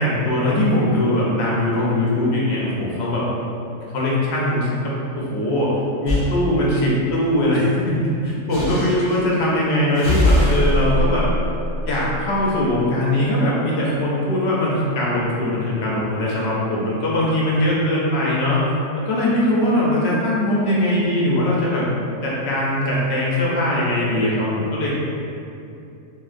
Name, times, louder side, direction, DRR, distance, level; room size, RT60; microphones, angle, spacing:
voice 1, 0.0-3.2 3.9-5.8 6.0-11.3 11.9-18.6 19.0-21.9 22.2-25.1, left 1 dB, 65° left, -5 dB, 0.7 m, -21 dB
sound 1, 6.1-6.3 8.5-9.2 9.9-12.6, left 1 dB, ahead, 1.3 m, -21 dB
3.6 x 2.4 x 2.4 m, 2.7 s
omnidirectional pair, 1.4 m